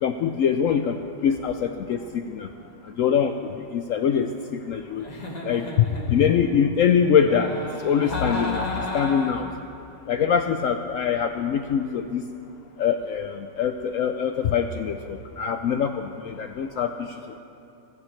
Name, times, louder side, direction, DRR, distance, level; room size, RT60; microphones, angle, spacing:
voice 1, 0.0-2.5 2.8-3.4 3.7-5.1 5.4-9.5 10.1-12.2 12.8-17.1, left 7 dB, 85° left, 7 dB, 0.7 m, -24 dB
Giggle, 5.0-6.5 7.2-9.6, left 2 dB, 25° left, 1.4 m, -33 dB
27.5 x 10.5 x 3.2 m, 2.9 s
omnidirectional pair, 1.9 m